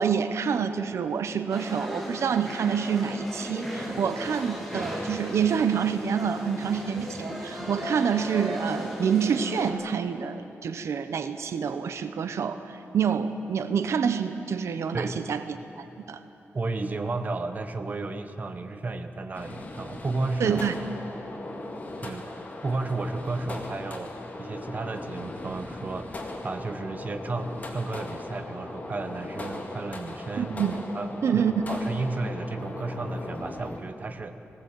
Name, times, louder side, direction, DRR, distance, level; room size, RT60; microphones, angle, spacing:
voice 1, 0.0-15.6 16.1-16.2 20.4-20.7 30.4-30.8 31.2-31.8, right 7 dB, 85° right, 10 dB, 0.8 m, -27 dB
After lunchtime at Cocineria de Dalcahue, 1.5-9.7, equal, ahead, 2.9 m, -36 dB
voice 2, 16.5-20.6 22.0-22.2 22.6-24.1 24.4-30.6 30.9-34.4, right 3 dB, 35° right, 8 dB, 0.9 m, -33 dB
sound 1, 19.3-33.8, left 2 dB, 35° left, 2.1 m, -38 dB
19.5 x 17.0 x 8.4 m, 3.0 s
wide cardioid pair, 160°, 5 cm